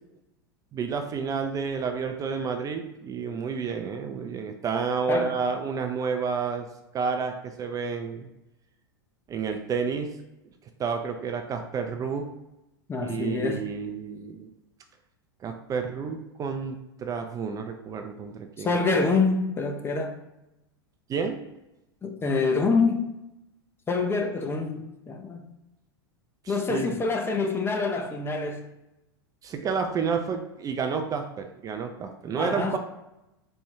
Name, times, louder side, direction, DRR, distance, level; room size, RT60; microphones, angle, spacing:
voice 1, 0.7-6.7 6.9-8.3 9.3-10.1 10.8-12.3 13.0-14.5 15.4-18.8 21.1-21.4 26.4-26.9 29.4-32.8, right 6 dB, 25° right, 0.5 m, -30 dB
voice 2, 12.9-13.7 18.6-20.2 22.0-23.1 23.9-25.5 26.5-28.6 32.3-32.8, left 4 dB, 20° left, 0.6 m, -26 dB
4.3 x 2.3 x 4.5 m
hypercardioid pair, 100°, 13 cm